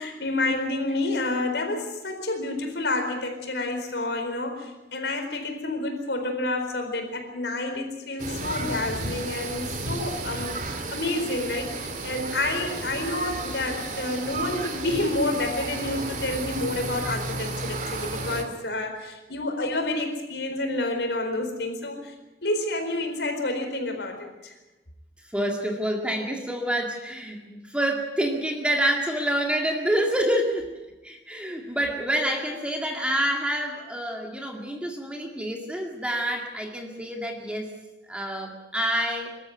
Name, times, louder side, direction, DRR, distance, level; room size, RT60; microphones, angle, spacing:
voice 1, 0.0-22.1 22.4-24.5, left 2 dB, 75° left, 5 dB, 4.4 m, -29 dB
sound 1, 8.2-18.4, right 2 dB, 45° right, 2.6 m, -33 dB
voice 2, 25.3-30.7 31.0-37.7 38.1-39.4, right 1 dB, 5° right, 1 dB, 2.1 m, -27 dB
24.0 x 13.5 x 9.5 m, 1.1 s
head